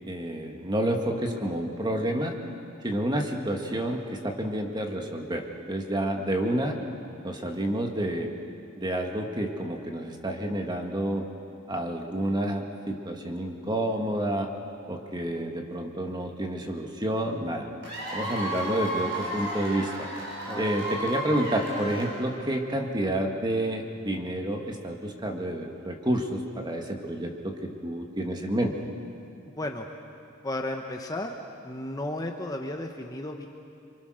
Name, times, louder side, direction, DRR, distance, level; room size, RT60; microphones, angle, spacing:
voice 1, 0.1-2.3 2.8-6.8 7.2-8.3 8.8-11.3 11.7-14.5 14.9-17.7 18.1-20.1 20.5-28.7, right 1 dB, 20° right, 3 dB, 2.0 m, -29 dB
Cheering / Applause / Crowd, 17.8-22.5, equal, 60° right, 7.0 m, -33 dB
voice 2, 29.5-29.9 30.4-31.3 31.6-33.5, left 1 dB, 20° left, 3 dB, 1.1 m, -34 dB
28.0 x 24.0 x 6.5 m, 2.5 s
head